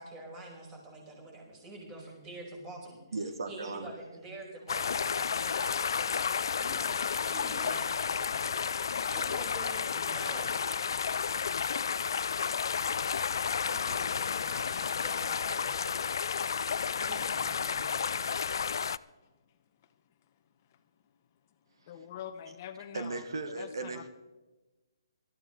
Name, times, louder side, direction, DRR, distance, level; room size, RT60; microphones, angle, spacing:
voice 1, 0.0-3.0 3.5-6.2 6.6-10.6 13.6-16.0 17.1-17.9, right 2 dB, 20° right, 0 dB, 5.1 m, -46 dB
voice 2, 3.1-3.9 21.8-21.9 22.9-24.1, right 3 dB, 70° right, 8 dB, 1.3 m, -37 dB
sound 1, 4.7-19.0, left 6 dB, 65° left, 0.4 m, -32 dB
voice 3, 21.9-24.0, left 9 dB, 35° left, 9 dB, 0.9 m, -44 dB
19.5 x 13.5 x 3.9 m, 1.2 s
hypercardioid pair, 145°, 2 cm